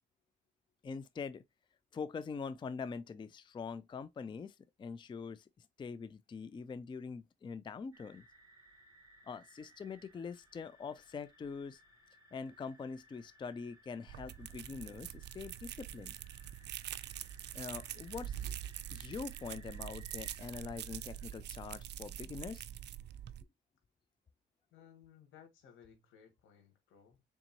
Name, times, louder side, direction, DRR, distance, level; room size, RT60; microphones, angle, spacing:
voice 1, 0.8-1.4 1.9-8.2 9.3-11.8 12.3-16.1 17.5-18.5 18.9-22.7, left 5 dB, 25° left, 0.4 m, -44 dB
sound 1, 7.9-21.3, right 1 dB, 15° right, 2.4 m, -62 dB
sound 2, 14.1-23.4, right 11 dB, 60° right, 0.4 m, -45 dB
voice 2, 24.7-27.2, left 8 dB, 85° left, 1.5 m, -60 dB
4.0 x 3.5 x 2.9 m
cardioid pair, 90°, 20 cm